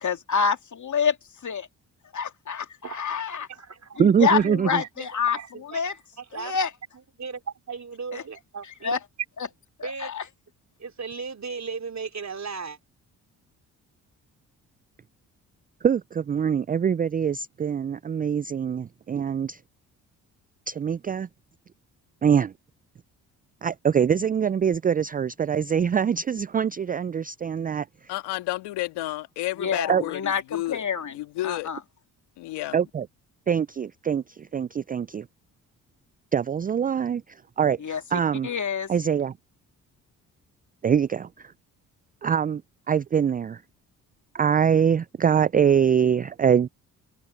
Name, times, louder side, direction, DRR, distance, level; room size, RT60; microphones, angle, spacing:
voice 1, 0.0-1.2 1.4-1.7 2.1-3.5 4.0-6.0 6.3-6.7 8.1-8.2 8.8-9.0 9.8-10.2 29.6-31.1 31.4-31.8 37.8-38.0 38.4-38.9, left 6 dB, 45° left, 2.7 m, -27 dB
voice 2, 2.8-3.2 3.5-3.9 4.3-5.8 6.2-6.6 7.2-9.0 9.8-10.1 10.8-12.8, right 5 dB, 40° right, 3.3 m, -36 dB
voice 3, 4.0-4.8 15.8-19.6 20.7-21.3 22.2-22.5 23.6-27.9 29.9-30.0 32.7-33.1 33.5-35.3 36.3-38.5 38.9-39.3 40.8-41.5 42.2-42.6 42.9-43.6 44.3-46.7, right 7 dB, 20° right, 0.4 m, -23 dB
voice 4, 28.1-30.8 31.1-31.7 32.4-32.8, left 17 dB, 75° left, 2.2 m, -31 dB
hypercardioid pair, 45°, 41 cm